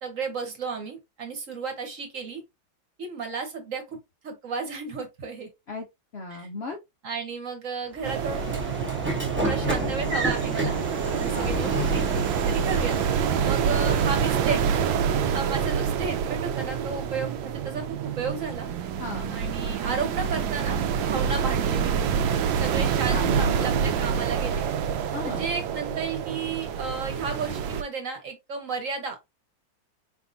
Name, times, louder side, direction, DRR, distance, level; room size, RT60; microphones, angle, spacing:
voice 1, 0.0-2.4 3.0-4.0 4.2-5.5 6.3-6.5 7.0-8.5 9.4-12.1 12.4-13.0 13.4-14.9 15.2-18.7 19.3-22.3 22.6-24.7 25.2-29.2, right 5 dB, 50° right, 1.2 m, -33 dB
voice 2, 6.1-6.8 11.3-11.6 13.4-13.5 13.8-14.1 19.0-19.4 23.1-24.0 25.1-25.5, left 3 dB, 85° left, 0.5 m, -36 dB
Train / Sliding door, 8.0-14.5, right 1 dB, 10° right, 0.5 m, -31 dB
sound 1, 8.0-27.8, right 7 dB, 80° right, 1.3 m, -27 dB
4.4 x 3.6 x 2.5 m
omnidirectional pair, 2.1 m